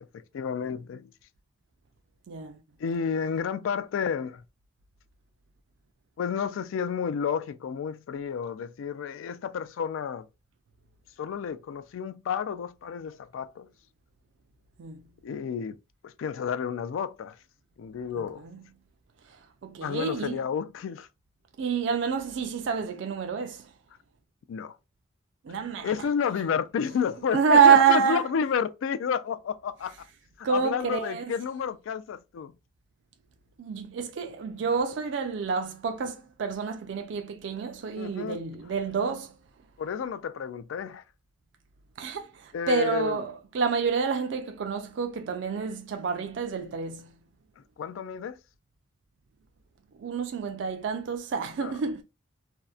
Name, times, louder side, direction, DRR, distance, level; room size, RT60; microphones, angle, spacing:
voice 1, 0.1-1.1 2.8-4.4 6.2-10.3 11.2-13.7 15.2-15.8 16.0-17.4 17.8-18.4 19.8-21.1 24.5-24.8 25.8-29.9 30.4-32.5 38.0-38.4 39.8-41.0 42.5-43.2 47.8-48.4 51.6-51.8, left 7 dB, 90° left, 0.3 m, -31 dB
voice 2, 2.3-2.6 14.8-15.0 18.2-18.6 19.3-19.4 19.6-20.4 21.6-23.7 25.4-25.9 27.3-28.3 30.4-31.3 33.6-39.4 42.0-47.1 50.0-52.0, right 6 dB, 65° right, 0.3 m, -27 dB
2.7 x 2.0 x 2.3 m
head